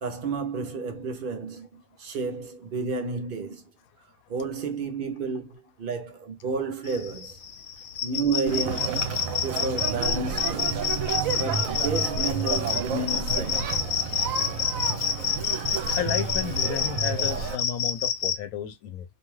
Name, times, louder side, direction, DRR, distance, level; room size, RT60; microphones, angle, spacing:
voice 1, 0.0-3.6 4.3-7.4 8.0-9.1 9.4-10.8 11.3-13.7, right 4 dB, 60° right, 0.6 m, -31 dB
sound 1, 6.9-18.4, left 7 dB, 65° left, 0.8 m, -28 dB
Conversation, 8.5-17.6, right 6 dB, 75° right, 1.0 m, -30 dB
voice 2, 16.0-19.0, left 8 dB, 90° left, 1.0 m, -32 dB
2.6 x 2.3 x 3.0 m
omnidirectional pair, 1.5 m